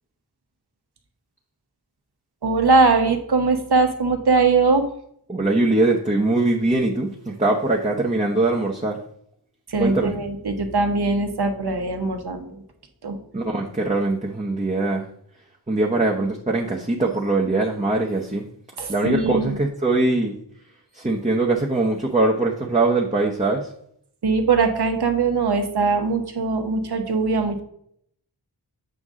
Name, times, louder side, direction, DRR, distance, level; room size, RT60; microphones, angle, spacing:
voice 1, 2.4-4.8 9.7-12.4 13.0-13.2 18.8-19.6 24.2-27.6, right 4 dB, 65° right, 5 dB, 1.1 m, -21 dB
voice 2, 5.3-9.0 9.8-10.2 13.3-15.1 15.7-18.4 18.9-20.4 20.9-23.6, right 2 dB, 15° right, -2 dB, 0.9 m, -22 dB
7.9 x 5.2 x 3.7 m, 0.67 s
wide cardioid pair, 95°, 41 cm